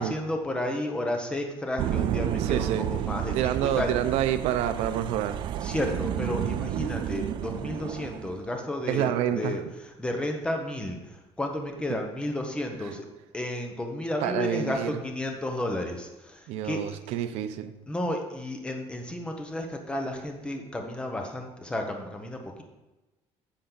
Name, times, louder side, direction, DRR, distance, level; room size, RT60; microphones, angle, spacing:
voice 1, 0.0-3.9 5.6-9.6 10.0-11.0 11.4-13.0 13.3-16.1 16.6-16.8 17.9-22.6, left 1 dB, 10° left, 3 dB, 1.0 m, -32 dB
sound 1, 1.8-8.4, right 11 dB, 45° right, 0.3 m, -31 dB
voice 2, 2.4-2.9 3.3-5.4 8.9-9.7 12.9-13.0 14.2-15.0 16.5-17.7, right 11 dB, 70° right, 10 dB, 0.7 m, -28 dB
10.0 x 6.4 x 4.0 m, 1.1 s
cardioid pair, 165°, 11 cm